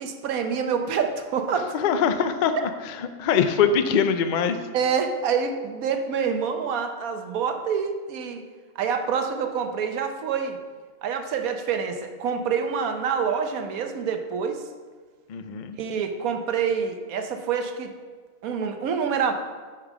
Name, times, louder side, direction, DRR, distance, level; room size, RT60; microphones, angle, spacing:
voice 1, 0.0-1.8 4.7-8.4 8.8-10.6 11.0-14.6 15.8-17.9 18.4-19.3, right 6 dB, 80° right, 6 dB, 1.2 m, -26 dB
voice 2, 1.7-4.6 15.3-15.8, left 7 dB, 60° left, 9 dB, 0.5 m, -23 dB
6.8 x 5.5 x 6.1 m, 1.5 s
omnidirectional pair, 1.5 m